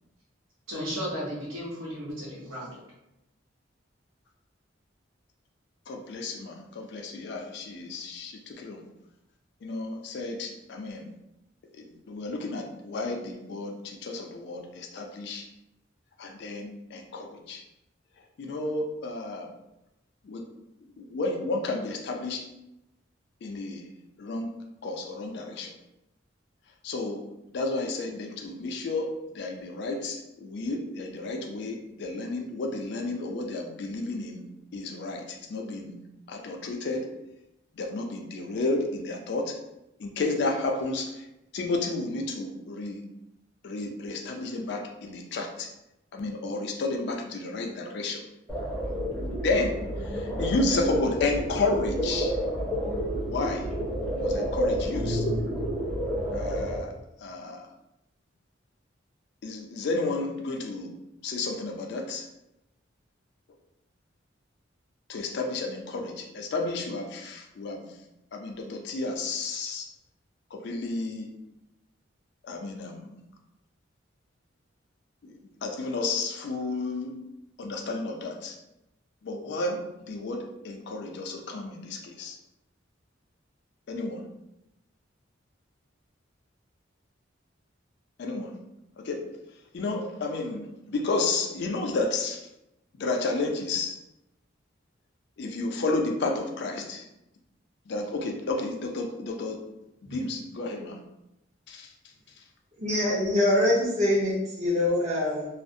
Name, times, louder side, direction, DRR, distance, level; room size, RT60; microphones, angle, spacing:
voice 1, 0.7-2.7, equal, 90° right, -5 dB, 1.0 m, -34 dB
voice 2, 5.9-8.8 9.6-11.1 11.8-15.5 16.2-17.6 18.4-19.5 20.2-20.5 21.0-22.5 23.4-23.9 24.2-24.5 24.8-25.7 26.8-27.2 27.5-34.4 34.7-36.0 36.3-37.1 37.7-39.6 40.0-41.3 41.5-43.0 43.6-45.7 46.1-48.2 49.4-52.4 53.1-53.7 54.2-55.3 56.3-56.9 57.2-57.7 59.4-60.9 61.2-62.3 65.1-68.0 68.3-69.9 70.5-71.3 72.4-73.2 75.2-77.2 77.6-78.6 79.2-82.4 83.9-84.2 88.2-88.5 89.0-89.2 89.7-92.4 92.9-94.0 95.4-97.0 97.9-99.6 100.0-101.0 101.7-101.9, left 3 dB, 60° left, 2 dB, 0.4 m, -32 dB
sound 1, 48.5-56.8, equal, ahead, 0.6 m, -30 dB
voice 3, 102.8-105.5, left 1 dB, 35° right, -5 dB, 0.7 m, -24 dB
2.4 x 2.0 x 2.5 m, 0.89 s
head